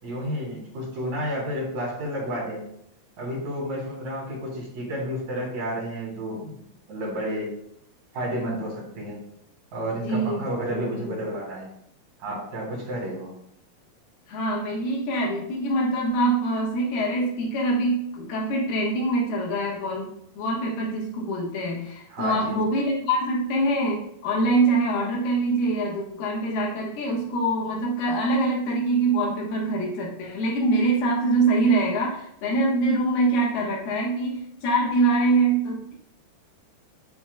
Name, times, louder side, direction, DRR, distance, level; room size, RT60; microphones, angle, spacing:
voice 1, 0.0-2.6 3.2-6.6 6.9-7.5 8.1-9.2 9.7-11.7 12.2-13.3 22.1-22.6, equal, 50° right, -5 dB, 4.1 m, -31 dB
voice 2, 10.0-11.2 14.3-35.9, right 2 dB, 85° left, -4 dB, 3.3 m, -24 dB
14.0 x 4.7 x 2.3 m, 0.73 s
omnidirectional pair, 4.4 m